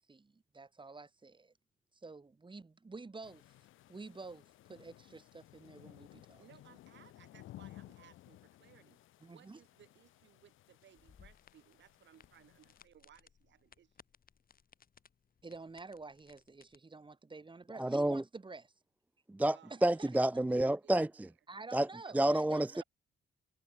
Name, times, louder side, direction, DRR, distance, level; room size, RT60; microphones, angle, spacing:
voice 1, 0.1-1.5 1.9-3.4 3.9-4.4 4.7-6.4 9.2-9.6 15.4-18.7 19.7-20.1 21.5-22.8, right 3 dB, 25° right, 6.0 m, -49 dB
sound 1, 3.2-12.9, left 15 dB, 85° left, 2.4 m, -58 dB
voice 2, 6.4-9.0 9.3-14.0 19.5-20.9 21.2-21.4 22.0-22.8, right 10 dB, 65° right, 7.9 m, -62 dB
sound 2, 11.0-16.8, left 7 dB, 45° left, 6.5 m, -64 dB
voice 3, 17.8-18.2 19.3-19.6 19.8-21.3 21.7-21.9 22.1-22.8, right 1 dB, 10° right, 0.5 m, -29 dB
cardioid pair, 90°, 20 cm